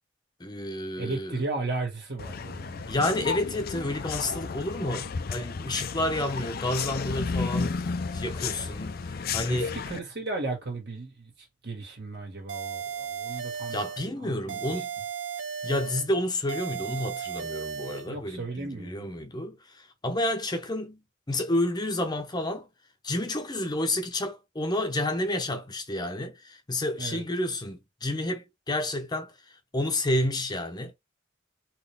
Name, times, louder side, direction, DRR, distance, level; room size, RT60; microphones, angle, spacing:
voice 1, 0.4-1.4 2.9-7.9 8.1-9.7 13.7-14.9 15.6-21.0 21.3-22.7 23.0-29.3 29.7-30.9, left 1 dB, 20° left, 0.7 m, -30 dB
voice 2, 1.0-3.0 9.5-11.3 11.6-13.8 14.2-14.8 18.1-19.1 27.0-27.2, right 3 dB, 60° right, 1.9 m, -35 dB
sound 1, 2.2-10.0, left 5 dB, 55° left, 0.5 m, -33 dB
sound 2, 12.5-14.1 14.5-16.1 16.5-18.1, right 7 dB, 80° right, 0.7 m, -35 dB
4.1 x 3.2 x 3.5 m
head